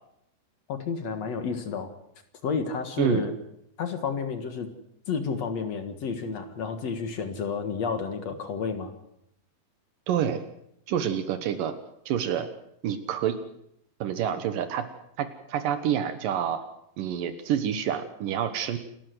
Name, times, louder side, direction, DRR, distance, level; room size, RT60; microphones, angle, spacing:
voice 1, 0.7-1.9 2.4-3.3 3.8-4.7 5.1-8.9, left 5 dB, 55° left, 8 dB, 2.6 m, -30 dB
voice 2, 3.0-3.3 10.1-10.4 10.9-11.7 12.1-12.5 12.8-13.4 14.0-14.9 15.2-16.7 17.0-18.8, right 9 dB, 80° right, 9 dB, 2.8 m, -27 dB
28.5 x 14.0 x 7.9 m, 0.75 s
omnidirectional pair, 3.9 m